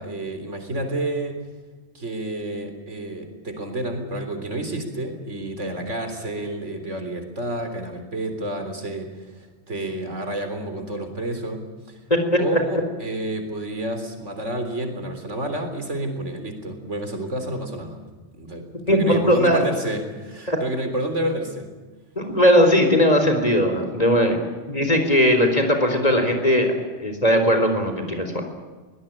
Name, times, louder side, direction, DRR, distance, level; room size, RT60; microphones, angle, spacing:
voice 1, 0.0-1.4 1.9-12.0 12.4-18.0 18.4-21.7, right 1 dB, 75° right, 6 dB, 4.1 m, -30 dB
voice 2, 18.9-19.6 20.5-20.6 22.2-24.4 24.7-26.7 27.0-28.4, equal, 30° left, 6 dB, 4.1 m, -19 dB
23.0 x 18.5 x 8.9 m, 1.3 s
omnidirectional pair, 1.2 m